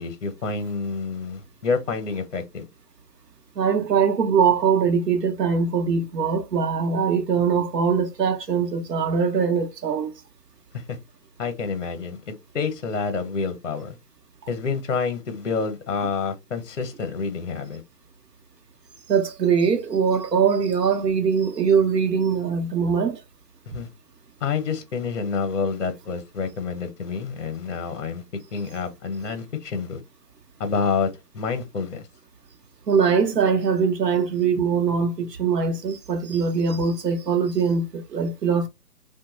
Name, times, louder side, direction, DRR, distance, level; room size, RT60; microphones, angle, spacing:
voice 1, 0.0-2.7 10.7-11.0 11.4-14.0 14.5-17.8 23.7-23.9 24.4-30.0 30.6-31.1 31.3-32.1, left 5 dB, 50° left, 0.6 m, -28 dB
voice 2, 3.6-10.1 19.1-23.2 32.9-38.7, right 6 dB, 90° right, 0.8 m, -22 dB
2.9 x 2.2 x 3.0 m
hypercardioid pair, 170°, 48 cm